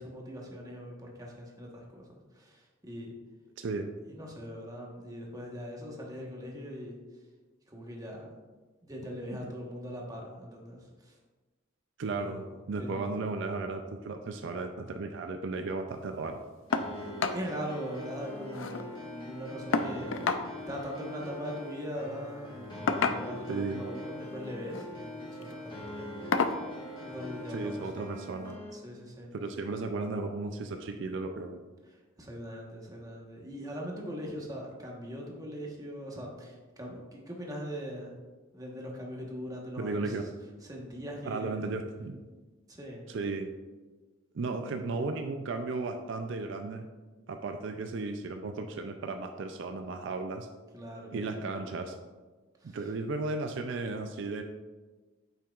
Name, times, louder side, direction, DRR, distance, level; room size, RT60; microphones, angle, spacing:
voice 1, 0.0-3.1 4.1-7.0 7.7-8.3 8.8-11.1 12.2-13.2 16.9-20.2 20.7-26.4 27.0-28.2 28.7-29.3 31.9-38.1 38.5-40.3 40.6-41.6 42.7-43.1 50.7-51.5 52.6-52.8, equal, 20° right, -1 dB, 1.2 m, -41 dB
voice 2, 3.6-3.9 9.3-9.4 12.0-16.4 23.5-23.8 27.5-28.5 29.3-31.6 39.8-40.2 41.2-42.3 43.1-43.5 44.3-46.9 47.3-50.5 51.1-52.0 52.6-54.4, right 3 dB, 65° right, 6 dB, 0.4 m, -35 dB
sound 1, 16.7-16.9 17.2-17.4 17.8-17.9 18.2-18.9 19.7-20.5 21.7-21.9 22.9-23.5 24.6-24.9 25.3-25.5 26.3-26.6 27.9-28.0 28.5-28.6, left 4 dB, 75° left, 0.5 m, -30 dB
sound 2, 16.7-28.7, left 1 dB, 25° left, 1.3 m, -42 dB
8.7 x 5.7 x 2.4 m, 1.3 s
head